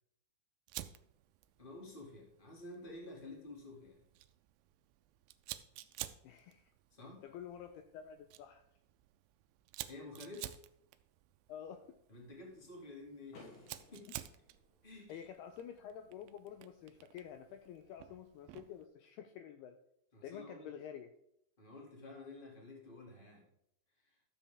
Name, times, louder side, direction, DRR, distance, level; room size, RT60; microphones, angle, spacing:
Fire, 0.7-18.9, right 15 dB, 85° right, 2.6 m, -52 dB
voice 1, 1.6-4.0 6.9-7.2 9.9-10.5 12.1-14.1 14.8-15.3 20.1-20.7 21.6-23.5 24.0-24.2, left 2 dB, 25° left, -1 dB, 1.1 m, -51 dB
voice 2, 6.2-6.7 7.2-8.6 11.5-12.0 15.1-19.8 20.2-21.1, left 9 dB, 85° left, 8 dB, 2.3 m, -49 dB
Car / Door, 13.3-15.2, left 3 dB, 65° left, 4.6 m, -59 dB
12.5 x 7.2 x 3.5 m, 0.76 s
omnidirectional pair, 5.1 m